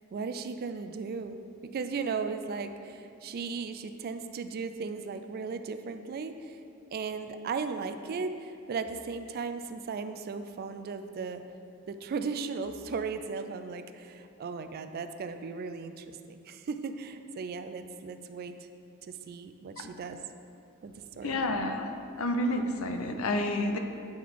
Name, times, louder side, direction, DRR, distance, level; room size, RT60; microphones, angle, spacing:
voice 1, 0.1-1.4 1.6-6.6 6.9-11.4 11.9-18.6 19.1-20.2 20.8-21.4, right 5 dB, 45° right, 9 dB, 0.3 m, -36 dB
voice 2, 21.2-23.8, left 1 dB, 75° left, 5 dB, 0.6 m, -30 dB
8.6 x 3.9 x 4.6 m, 2.6 s
head